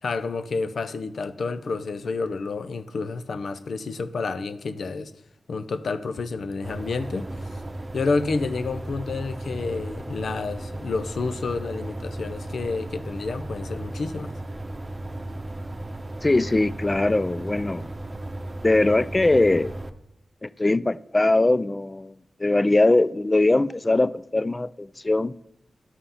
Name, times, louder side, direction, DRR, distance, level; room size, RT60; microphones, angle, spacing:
voice 1, 0.0-5.1 5.5-7.5 7.9-14.3, left 4 dB, 80° left, 0.6 m, -29 dB
sound 1, 6.6-19.9, right 1 dB, 30° right, 0.8 m, -35 dB
voice 2, 16.2-17.9 18.6-19.8 20.4-22.1 22.4-25.3, left 2 dB, 30° left, 0.4 m, -21 dB
11.5 x 5.6 x 5.7 m
cardioid pair, 55°, 0 cm